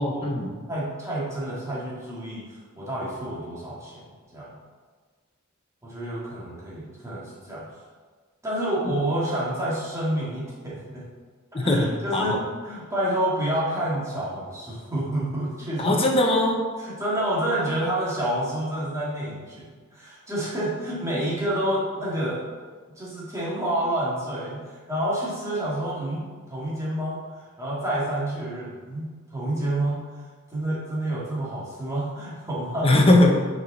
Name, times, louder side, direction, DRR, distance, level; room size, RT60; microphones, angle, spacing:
voice 1, 0.0-0.5 11.5-12.4 15.8-16.7 32.8-33.4, left 1 dB, 25° left, 1 dB, 0.7 m, -20 dB
voice 2, 0.7-2.4 2.8-4.0 4.3-4.5 5.8-7.6 8.4-11.0 11.6-16.0 16.8-22.4 23.0-24.6 24.9-30.0 30.5-32.9, right 1 dB, 15° right, -8 dB, 1.7 m, -28 dB
5.4 x 4.8 x 4.1 m, 1.5 s
head